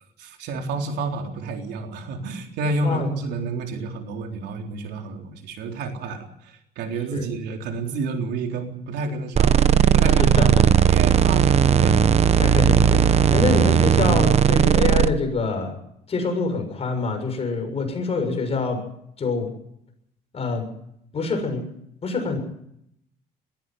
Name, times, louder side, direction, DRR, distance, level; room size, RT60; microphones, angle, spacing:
voice 1, 0.2-12.0, right 3 dB, 80° right, 3 dB, 3.9 m, -30 dB
sound 1, 9.4-15.1, right 8 dB, 40° right, 0.9 m, -17 dB
voice 2, 10.2-10.7 12.4-15.7 16.1-18.8 19.2-19.5 20.3-20.7 21.1-21.6 22.0-22.4, left 4 dB, 35° left, 4 dB, 6.8 m, -25 dB
21.5 x 15.0 x 9.4 m, 0.75 s
cardioid pair, 110°, 17 cm